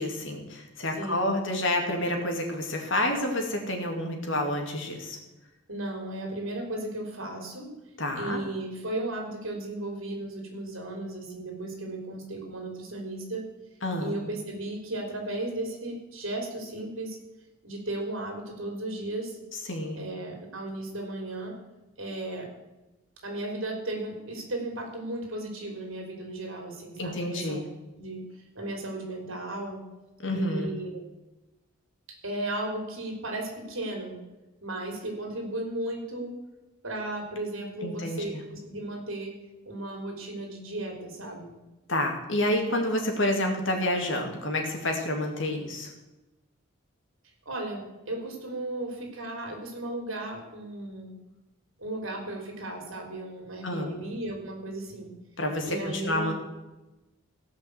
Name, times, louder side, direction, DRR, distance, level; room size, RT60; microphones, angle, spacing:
voice 1, 0.0-5.2 8.0-8.4 13.8-14.1 19.7-20.0 27.0-27.7 30.2-30.7 37.8-38.4 41.9-45.9 53.6-53.9 55.4-56.3, left 1 dB, 65° left, 3 dB, 2.5 m, -29 dB
voice 2, 0.9-1.3 5.7-7.7 8.2-13.4 14.0-17.2 17.6-19.4 19.9-21.6 22.0-22.5 23.2-27.6 27.9-28.2 28.5-29.8 30.3-31.0 32.2-34.2 34.6-36.3 36.8-39.3 39.6-41.5 47.4-51.1 51.8-55.1 55.6-56.3, right 1 dB, 75° right, 3 dB, 3.3 m, -35 dB
17.0 x 5.7 x 8.0 m, 1.0 s
head